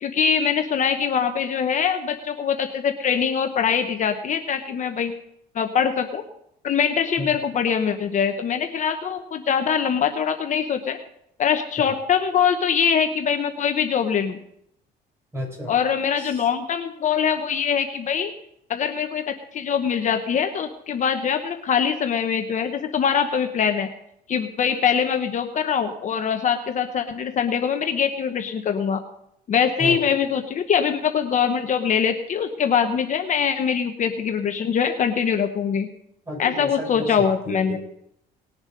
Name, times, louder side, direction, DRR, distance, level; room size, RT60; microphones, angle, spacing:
voice 1, 0.0-5.1 5.5-6.2 6.6-11.0 11.4-14.4 15.7-18.3 18.7-23.9 24.3-29.0 29.5-35.9 36.4-37.8, left 7 dB, 45° left, 6 dB, 1.0 m, -23 dB
voice 2, 15.3-15.7 16.2-16.4 29.8-30.1 36.3-37.8, equal, 15° right, -1 dB, 7.0 m, -32 dB
19.5 x 7.2 x 5.1 m, 0.75 s
cardioid pair, 110°, 17 cm